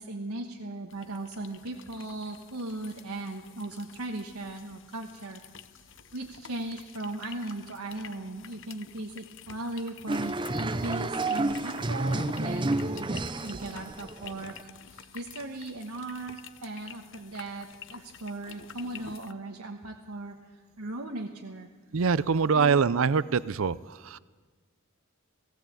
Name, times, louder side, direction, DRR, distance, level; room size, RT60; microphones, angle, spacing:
voice 1, 0.0-5.4 6.1-10.3 10.6-14.5 15.1-20.3 20.8-21.7 22.5-22.9, right 2 dB, 85° right, 1 dB, 1.4 m, -38 dB
sound 1, 0.9-19.3, left 8 dB, 55° left, 0.8 m, -49 dB
sound 2, 10.1-14.6, right 2 dB, 20° right, 0.6 m, -30 dB
voice 2, 21.9-24.2, right 5 dB, 65° right, 18 dB, 0.5 m, -24 dB
18.5 x 17.0 x 8.4 m, 1.4 s
head